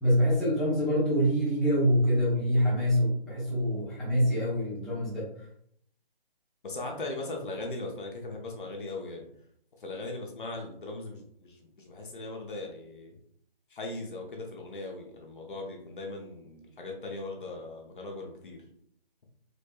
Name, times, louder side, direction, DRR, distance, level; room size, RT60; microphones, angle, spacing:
voice 1, 0.0-5.3, equal, ahead, -12 dB, 0.9 m, -25 dB
voice 2, 6.6-9.3 9.8-13.2 13.7-18.6, left 2 dB, 60° left, 1 dB, 1.0 m, -39 dB
4.0 x 3.3 x 2.2 m, 0.66 s
figure-of-eight pair, 145°, 29 cm